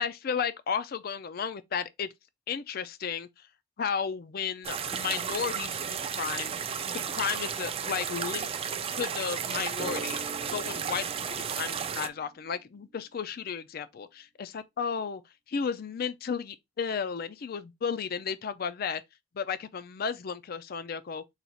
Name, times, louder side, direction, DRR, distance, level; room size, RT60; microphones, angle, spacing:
voice 1, 0.0-2.1 2.5-3.5 3.8-6.5 6.8-8.5 9.0-10.2 10.5-15.2 15.5-19.0 19.3-21.2, left 6 dB, 50° left, 0.4 m, -33 dB
sound 1, 4.6-12.1, right 7 dB, 30° right, 0.4 m, -33 dB
Drum, 9.8-13.1, right 3 dB, 55° right, 0.9 m, -44 dB
4.0 x 2.4 x 4.3 m
head